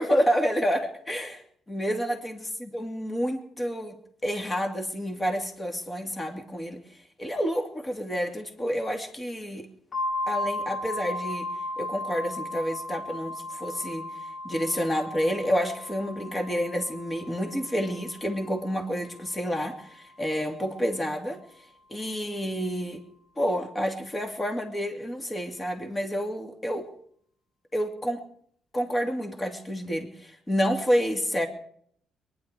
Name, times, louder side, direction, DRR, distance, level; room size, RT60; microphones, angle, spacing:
voice 1, 0.0-3.9 4.2-6.8 7.2-9.7 10.3-11.5 11.8-14.1 14.4-21.4 21.9-23.0 23.4-26.9 27.7-28.2 28.7-31.5, equal, 20° left, 4 dB, 2.8 m, -29 dB
sound 1, 9.9-19.5, left 1 dB, 45° left, 2.5 m, -36 dB
23.0 x 11.0 x 4.9 m, 0.63 s
cardioid pair, 90°, 0 cm